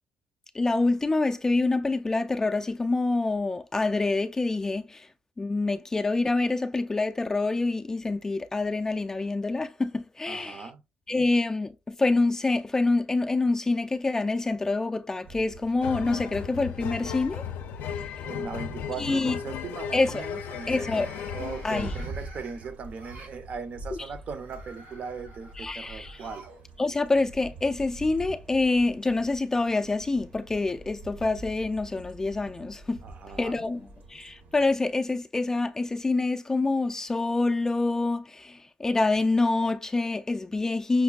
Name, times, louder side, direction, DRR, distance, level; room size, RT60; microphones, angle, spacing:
voice 1, 0.5-5.1 5.4-10.7 11.1-17.4 17.9-18.2 19.0-19.4 19.9-20.2 20.7-21.1 21.6-21.9 23.9-24.0 25.6-26.2 26.8-33.0 33.4-41.0, left 3 dB, 15° left, 0.3 m, -26 dB
voice 2, 10.3-10.8 18.2-26.5 33.0-33.7, right 5 dB, 45° right, 0.6 m, -39 dB
sound 1, 15.2-34.8, right 2 dB, 70° right, 0.9 m, -45 dB
sound 2, 15.8-22.1, left 8 dB, 80° left, 0.4 m, -36 dB
sound 3, 16.8-17.4 17.8-18.2 20.3-23.4 24.2-26.6 26.9-27.0 28.1-28.2, right 2 dB, 85° right, 1.4 m, -51 dB
5.8 x 2.2 x 2.3 m
cardioid pair, 135°, 3 cm